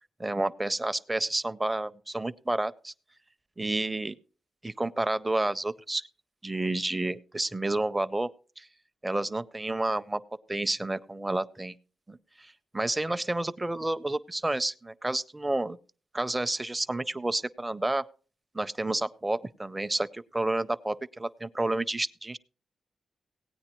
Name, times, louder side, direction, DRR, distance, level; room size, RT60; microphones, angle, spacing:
voice 1, 0.2-2.9 3.6-4.2 4.6-6.0 6.4-8.3 8.6-8.7 9.0-10.2 10.5-11.7 12.1-15.8 16.1-18.0 18.5-22.4, right 2 dB, 15° right, 13 dB, 0.5 m, -30 dB
17.5 x 9.4 x 3.0 m, 0.39 s
cardioid pair, 105°, 0 cm